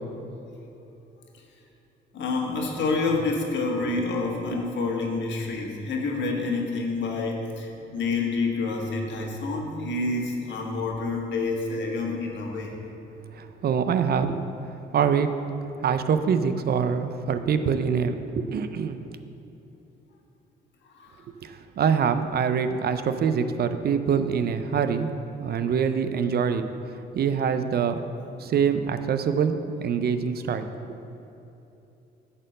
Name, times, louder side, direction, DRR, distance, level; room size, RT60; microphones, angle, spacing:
voice 1, 2.1-12.8 21.0-21.3, left 3 dB, 65° left, 1 dB, 1.5 m, -28 dB
voice 2, 13.3-14.4 14.9-15.3 15.8-19.1 21.4-25.1 25.4-26.6 27.1-28.0 28.4-30.7, right 6 dB, 50° right, 10 dB, 0.5 m, -24 dB
8.7 x 4.4 x 6.6 m, 2.9 s
cardioid pair, 90°, 20 cm